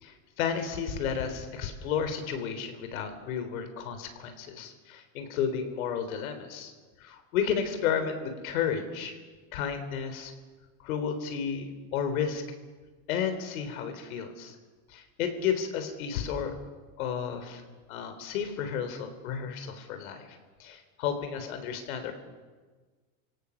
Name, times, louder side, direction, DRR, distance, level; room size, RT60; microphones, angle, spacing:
voice 1, 0.0-6.7 7.0-9.2 9.5-10.3 10.8-12.4 13.1-14.6 14.9-16.6 17.0-17.6 17.9-22.1, left 7 dB, 90° left, 8 dB, 3.7 m, -32 dB
29.0 x 17.5 x 7.2 m, 1.4 s
supercardioid pair, 175°, 41 cm